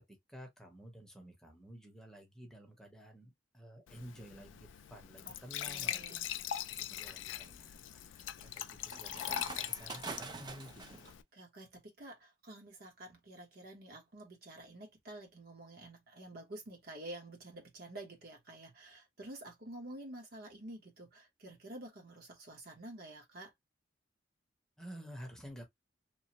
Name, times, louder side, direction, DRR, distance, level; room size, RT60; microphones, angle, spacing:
voice 1, 0.3-6.2 6.7-8.1 8.4-11.1 24.8-25.6, equal, 5° left, 0.8 m, -52 dB
Glass / Trickle dribble / Fill (with liquid), 3.9-11.2, left 11 dB, 85° left, 0.3 m, -42 dB
voice 2, 5.6-6.3 8.1-8.2 11.1-23.5, right 1 dB, 55° right, 0.9 m, -50 dB
sound 1, 6.5-11.1, right 4 dB, 25° right, 0.3 m, -47 dB
3.0 x 2.0 x 2.8 m
head